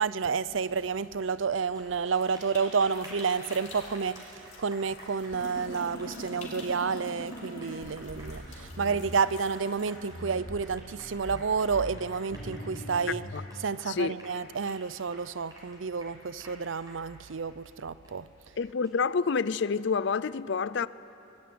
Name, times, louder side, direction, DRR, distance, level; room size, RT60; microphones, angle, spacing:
voice 1, 0.0-13.3 13.6-18.3, right 5 dB, 80° right, 0.6 m, -30 dB
Applause, 1.6-19.3, equal, 20° right, 5.8 m, -51 dB
sound 1, 2.2-10.0, left 4 dB, 40° left, 4.0 m, -52 dB
sound 2, 5.3-9.1 9.9-13.5, equal, 85° left, 3.8 m, -42 dB
voice 2, 18.6-20.9, left 5 dB, 65° left, 0.5 m, -28 dB
24.5 x 20.5 x 9.6 m
head